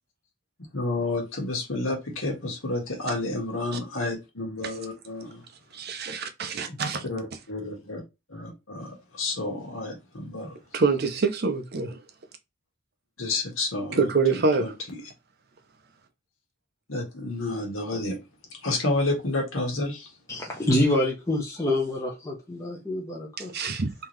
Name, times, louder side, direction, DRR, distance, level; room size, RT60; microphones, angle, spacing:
voice 1, 0.7-5.4 7.0-7.2 7.5-8.0 8.3-10.5 13.2-14.1 14.6-14.7 16.9-18.2 18.6-20.1, left 2 dB, 70° left, 1.5 m, -30 dB
voice 2, 5.7-7.0 10.7-12.0 13.9-14.7 23.4-23.9, right 4 dB, 45° right, 0.6 m, -26 dB
voice 3, 20.3-23.5, left 1 dB, 15° left, 0.7 m, -26 dB
3.7 x 2.9 x 3.1 m
head